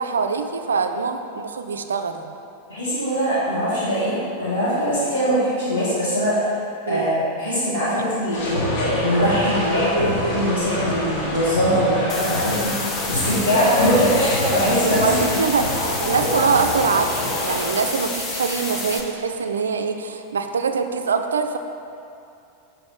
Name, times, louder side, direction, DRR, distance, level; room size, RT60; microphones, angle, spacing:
voice 1, 0.0-2.3 6.9-7.1 15.0-15.7 16.0-21.6, right 5 dB, 70° right, 7 dB, 0.3 m, -23 dB
voice 2, 2.7-6.4 6.9-15.4, equal, 85° left, -13 dB, 1.3 m, -22 dB
sound 1, 8.3-17.7, left 1 dB, 45° left, 1.2 m, -25 dB
sound 2, 12.1-19.0, left 3 dB, 25° left, 0.7 m, -30 dB
6.1 x 4.6 x 3.4 m, 2.6 s
figure-of-eight pair, 90°, 0 cm